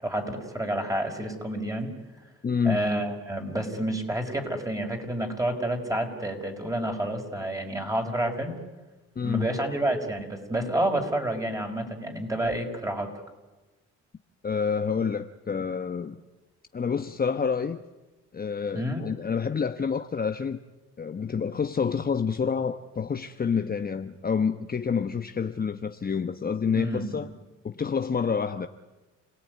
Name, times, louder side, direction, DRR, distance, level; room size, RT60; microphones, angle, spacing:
voice 1, 0.0-1.9 2.6-8.6 9.2-13.1 18.7-19.0 26.8-27.3, right 1 dB, 10° right, 5.5 m, -29 dB
voice 2, 2.4-2.8 9.2-9.6 14.4-16.2 16.7-17.8 18.3-20.6 21.0-27.3 27.6-28.7, left 6 dB, 30° left, 1.1 m, -28 dB
29.5 x 18.0 x 9.5 m
cardioid pair, 90°, 30 cm